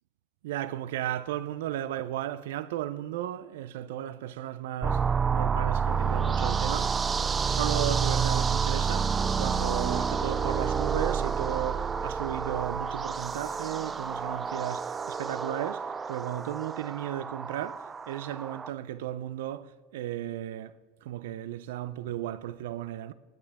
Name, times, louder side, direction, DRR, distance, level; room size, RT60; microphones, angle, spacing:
voice 1, 0.4-6.9 7.4-20.8 21.0-23.1, right 12 dB, 80° right, 0.5 m, -35 dB
sound 1, 4.8-18.7, right 6 dB, 25° right, 0.5 m, -29 dB
17.0 x 9.8 x 3.5 m
hypercardioid pair, 100°, 0 cm